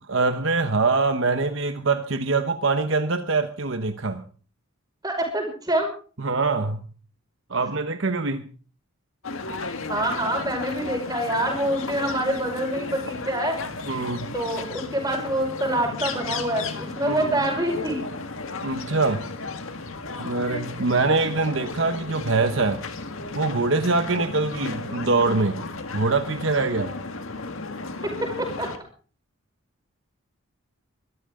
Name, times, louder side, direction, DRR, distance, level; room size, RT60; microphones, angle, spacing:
voice 1, 0.1-4.2 6.2-6.8 7.5-8.4 13.9-14.3 17.0-17.4 18.6-19.2 20.2-22.8 23.3-25.6 25.9-27.0, right 3 dB, 60° right, 8 dB, 1.1 m, -24 dB
voice 2, 5.0-5.9 9.5-9.6 9.9-13.6 14.3-18.0 28.0-28.7, right 1 dB, 20° right, 2 dB, 5.3 m, -26 dB
sound 1, 9.2-28.8, left 3 dB, 70° left, 1.9 m, -34 dB
23.5 x 13.0 x 3.8 m, 0.39 s
head